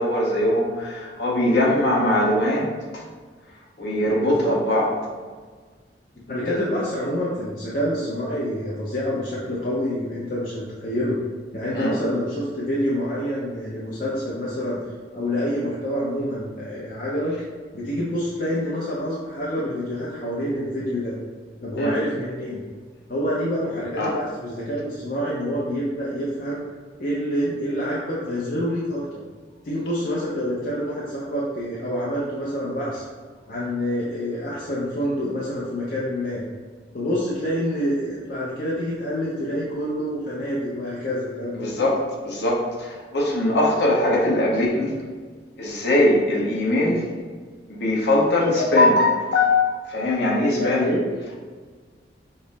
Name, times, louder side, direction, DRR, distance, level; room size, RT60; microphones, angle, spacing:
voice 1, 0.0-3.0 3.8-4.9 6.5-6.6 11.7-11.9 21.8-21.9 24.0-24.1 41.5-44.9 45.6-47.1 47.7-50.9, left 1 dB, 65° left, -4 dB, 0.9 m, -21 dB
voice 2, 4.2-4.6 6.3-11.2 11.5-14.8 15.1-17.3 17.7-21.1 21.6-22.6 23.1-26.6 27.0-29.0 29.6-33.0 33.5-36.4 36.9-41.9 50.5-51.0, equal, 45° left, -6 dB, 0.6 m, -27 dB
5.2 x 2.0 x 4.0 m, 1.5 s
head